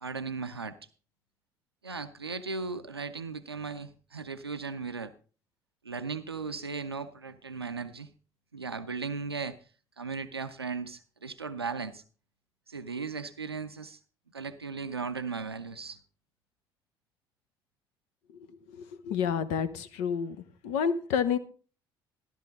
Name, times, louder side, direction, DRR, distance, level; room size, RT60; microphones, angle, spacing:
voice 1, 0.0-0.8 1.8-5.1 5.8-8.1 8.5-9.6 10.0-12.0 12.7-14.0 14.3-16.0, right 4 dB, 90° right, 9 dB, 0.5 m, -37 dB
voice 2, 18.7-20.4 20.6-21.4, left 7 dB, 65° left, 12 dB, 0.9 m, -29 dB
13.0 x 12.0 x 3.8 m, 0.38 s
figure-of-eight pair, 50°, 13 cm